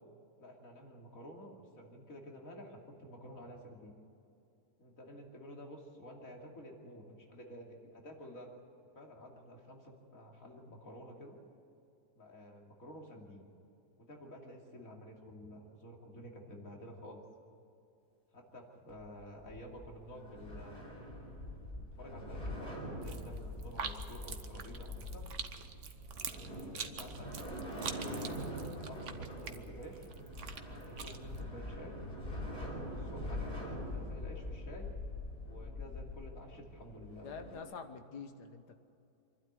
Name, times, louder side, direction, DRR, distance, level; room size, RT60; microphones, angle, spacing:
voice 1, 0.4-4.0 4.8-8.5 8.9-11.4 12.2-13.5 14.0-17.2 18.3-21.0 21.8-25.3 26.5-27.3 27.7-30.1 30.6-32.1 32.4-34.9 35.4-37.3, equal, 50° left, 0 dB, 3.1 m, -51 dB
sound 1, 18.9-37.6, left 1 dB, 35° left, 5.7 m, -44 dB
sound 2, 23.0-31.4, right 6 dB, 50° right, 1.2 m, -45 dB
voice 2, 37.2-38.8, left 5 dB, 75° left, 8 dB, 1.9 m, -46 dB
26.0 x 12.0 x 9.5 m, 2.7 s
omnidirectional pair, 1.8 m